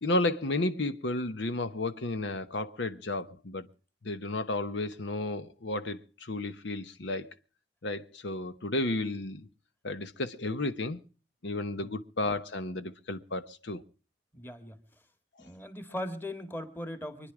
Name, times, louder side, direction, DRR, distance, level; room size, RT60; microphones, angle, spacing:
voice 1, 0.0-3.7 4.0-7.3 7.8-9.5 9.8-11.0 11.4-13.8, left 2 dB, 65° left, 0.9 m, -32 dB
voice 2, 14.3-14.8 15.4-17.3, left 1 dB, 10° left, 1.8 m, -39 dB
25.0 x 10.0 x 4.9 m
head